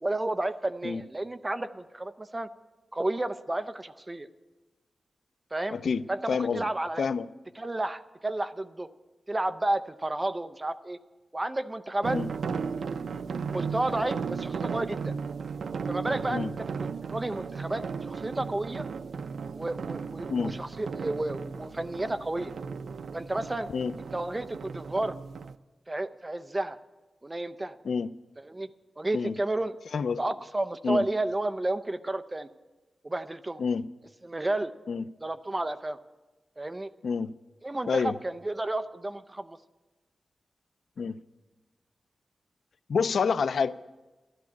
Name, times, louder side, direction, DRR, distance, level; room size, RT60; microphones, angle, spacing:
voice 1, 0.0-2.5 2.9-4.3 5.5-5.8 6.1-7.0 7.6-8.9 9.3-11.0 11.3-12.2 13.5-15.2 15.9-18.9 19.5-22.5 23.1-23.7 24.1-25.2 25.9-26.8 27.2-27.8 28.4-28.7 29.0-29.8 30.2-32.5 33.0-33.6 34.2-34.7 35.2-36.0 36.6-36.9 37.6-39.6, right 2 dB, 20° right, 0.5 m, -31 dB
voice 2, 5.7-6.7 7.0-7.3 12.1-12.3 16.3-16.5 20.3-20.6 23.7-23.9 27.8-28.1 29.1-29.3 29.9-30.2 30.8-31.0 33.6-33.9 34.9-35.0 37.0-37.3 37.9-38.1 41.0-41.2 42.9-43.9, left 5 dB, 70° left, 0.4 m, -28 dB
sound 1, 12.0-25.5, right 5 dB, 85° right, 0.4 m, -35 dB
13.0 x 12.0 x 8.5 m
wide cardioid pair, 180°, 0 cm